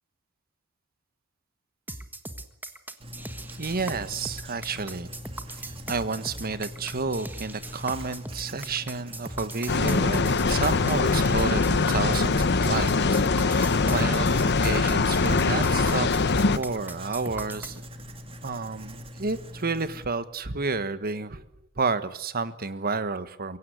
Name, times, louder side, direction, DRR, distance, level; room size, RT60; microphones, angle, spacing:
sound 1, 1.9-17.8, right 2 dB, 10° right, 1.5 m, -39 dB
Writing, 3.0-20.0, equal, 25° right, 2.1 m, -42 dB
voice 1, 3.6-5.1 5.9-17.9 18.4-21.4 21.8-23.6, right 4 dB, 45° right, 12 dB, 1.4 m, -31 dB
sound 2, 9.7-16.6, left 4 dB, 50° left, 1.0 m, -23 dB
23.5 x 16.5 x 9.5 m, 0.80 s
head